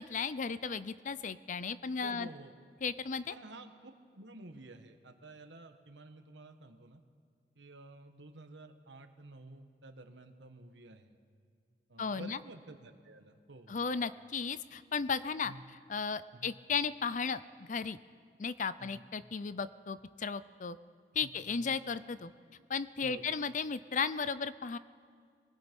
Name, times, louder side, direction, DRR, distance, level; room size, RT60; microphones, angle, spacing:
voice 1, 0.0-2.3 2.8-3.3 12.0-12.4 13.7-15.5 15.9-18.0 18.4-20.8 21.1-22.3 22.7-24.8, left 5 dB, 45° left, 15 dB, 0.5 m, -35 dB
voice 2, 2.0-2.5 3.3-7.0 7.5-11.1 11.9-14.0 15.4-15.6 16.3-16.5 18.8-19.0 21.2-21.8 23.0-23.3, right 2 dB, 85° right, 7 dB, 1.4 m, -51 dB
24.5 x 19.5 x 5.4 m, 2.1 s
head